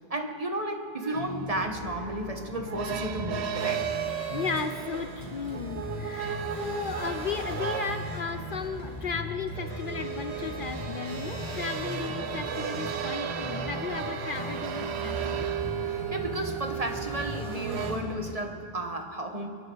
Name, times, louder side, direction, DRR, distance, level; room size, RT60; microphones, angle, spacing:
voice 1, 0.1-4.0 15.8-19.5, right 1 dB, 35° right, 3 dB, 1.4 m, -33 dB
sound 1, 1.0-17.9, right 9 dB, 90° right, 1.0 m, -35 dB
sound 2, 1.1-18.3, equal, 40° left, 3.9 m, -39 dB
sound 3, 3.6-18.0, left 1 dB, 5° left, 3.1 m, -45 dB
voice 2, 4.3-15.5, left 5 dB, 60° left, 9 dB, 0.8 m, -35 dB
29.0 x 11.0 x 4.0 m, 2.3 s
omnidirectional pair, 1.1 m